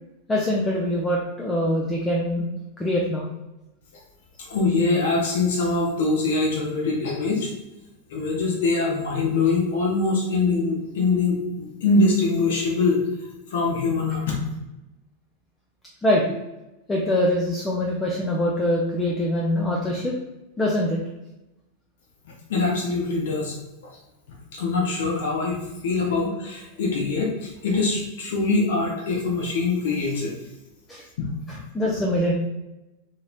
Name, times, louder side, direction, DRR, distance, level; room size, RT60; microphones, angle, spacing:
voice 1, 0.3-2.5 2.8-3.3 16.0-16.4 16.9-20.1 20.6-21.0 30.9-31.0 31.7-32.3, left 1 dB, 10° left, -3 dB, 0.4 m, -23 dB
voice 2, 4.4-7.5 8.1-13.0 13.5-14.4 22.5-23.5 24.5-30.3 31.2-31.3, left 3 dB, 55° left, -1 dB, 0.7 m, -23 dB
2.9 x 2.8 x 2.2 m, 0.97 s
figure-of-eight pair, 90°, 0 cm